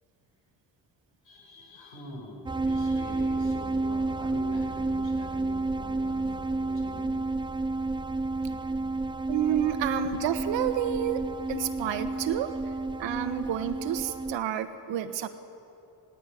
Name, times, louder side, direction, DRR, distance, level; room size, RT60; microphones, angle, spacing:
voice 1, 1.2-7.2 8.3-8.9, left 2 dB, 80° left, 0 dB, 6.0 m, -45 dB
sound 1, 2.5-14.4, right 2 dB, 10° right, 0.5 m, -30 dB
voice 2, 9.3-11.2 11.5-12.5 13.0-15.3, right 10 dB, 80° right, 9 dB, 1.4 m, -29 dB
18.0 x 17.5 x 9.8 m, 2.8 s
cardioid pair, 80°, 44 cm